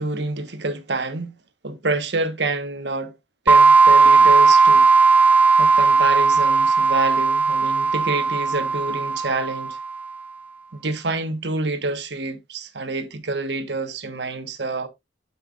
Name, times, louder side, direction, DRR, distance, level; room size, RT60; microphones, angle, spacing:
voice 1, 0.0-1.4 1.6-3.1 3.4-4.9 5.6-9.8 10.8-14.9, right 2 dB, 70° right, 1.3 m, -27 dB
sound 1, 3.5-10.0, right 4 dB, 10° right, 0.3 m, -16 dB
12.0 x 5.7 x 2.5 m
head